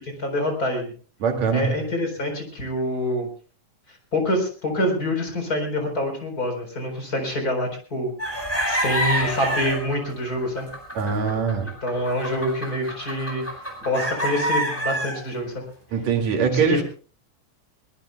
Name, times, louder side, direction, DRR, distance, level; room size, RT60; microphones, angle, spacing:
voice 1, 0.2-0.9 1.5-3.3 4.1-10.7 11.8-13.4 13.8-15.5 16.5-16.8, left 1 dB, 30° left, 5 dB, 4.5 m, -26 dB
voice 2, 1.2-1.7 10.9-11.7 15.9-16.8, right 6 dB, 60° right, 3 dB, 3.4 m, -22 dB
sound 1, 8.2-15.2, equal, 5° left, 4.5 m, -27 dB
23.0 x 19.5 x 2.3 m, 0.38 s
omnidirectional pair, 3.6 m